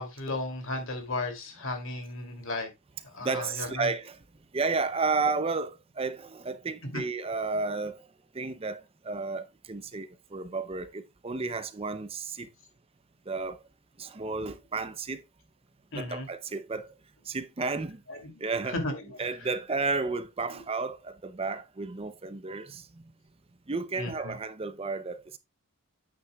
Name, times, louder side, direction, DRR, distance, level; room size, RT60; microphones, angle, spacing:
voice 1, 0.0-2.7 3.1-3.9 6.9-7.0 15.9-16.3 18.1-18.4 18.7-19.2 20.5-20.6 24.0-24.4, left 2 dB, 65° left, 2.7 m, -35 dB
voice 2, 3.2-4.2 4.5-8.0 8.3-12.5 13.3-13.6 14.0-15.2 15.9-16.9 17.3-18.0 18.4-18.8 19.2-22.9 23.7-25.4, right 4 dB, 25° right, 0.6 m, -32 dB
9.4 x 8.5 x 2.3 m
head